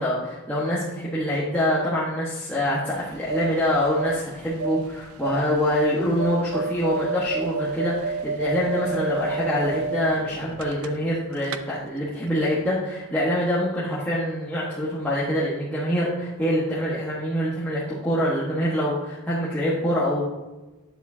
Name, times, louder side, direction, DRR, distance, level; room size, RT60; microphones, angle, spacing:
voice 1, 0.0-20.2, equal, 5° left, -9 dB, 1.3 m, -25 dB
sound 1, 3.0-11.2 11.4-11.6, right 4 dB, 70° right, 0.4 m, -30 dB
9.5 x 7.5 x 2.8 m, 1.1 s
head